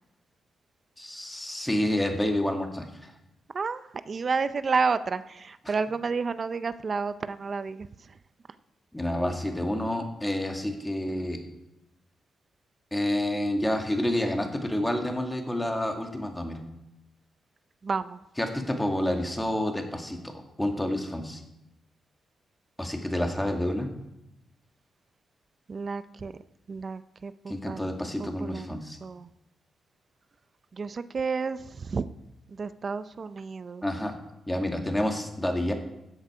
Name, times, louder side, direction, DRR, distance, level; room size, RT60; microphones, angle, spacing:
voice 1, 1.0-3.1 5.7-5.8 8.9-11.4 12.9-16.6 18.4-21.4 22.8-23.9 27.5-29.0 33.8-34.1 34.5-35.7, left 1 dB, 10° left, 3 dB, 2.0 m, -29 dB
voice 2, 3.5-7.9 17.8-18.2 25.7-26.3 26.7-27.9 28.2-29.3 30.8-32.0 32.6-33.8, right 4 dB, 45° right, 13 dB, 0.5 m, -31 dB
13.0 x 8.1 x 4.9 m, 0.89 s
cardioid pair, 80°, 0 cm